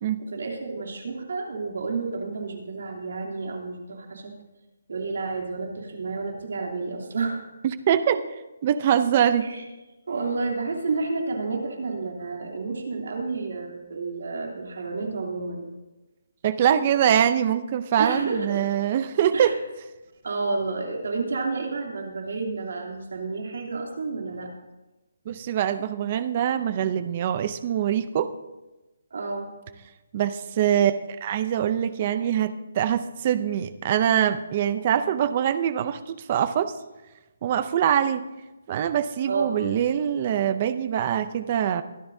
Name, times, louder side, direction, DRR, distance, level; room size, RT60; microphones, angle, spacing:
voice 1, 0.2-4.3 4.9-7.4 7.9-8.0 9.4-9.6 10.1-15.7 18.0-18.7 19.3-19.5 20.2-24.5 29.1-29.5 39.3-39.6, right 3 dB, 60° right, 1 dB, 2.9 m, -30 dB
voice 2, 7.9-8.2 8.6-9.5 16.4-19.5 25.3-28.3 30.1-36.7 37.4-38.3 38.7-41.8, right 9 dB, 25° right, 13 dB, 0.5 m, -23 dB
23.0 x 12.5 x 2.7 m, 1.1 s
hypercardioid pair, 180°, 0 cm